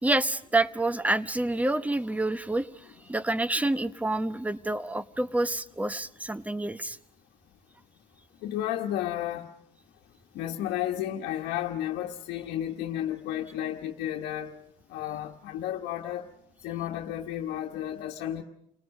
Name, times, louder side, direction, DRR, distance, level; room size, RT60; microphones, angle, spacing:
voice 1, 0.0-2.7 3.1-7.0, right 2 dB, 10° right, 0.9 m, -28 dB
voice 2, 8.4-9.5 10.3-14.5 14.9-16.3 16.6-18.4, left 12 dB, 85° left, 1.2 m, -32 dB
29.5 x 19.5 x 6.5 m
cardioid pair, 110°, 17 cm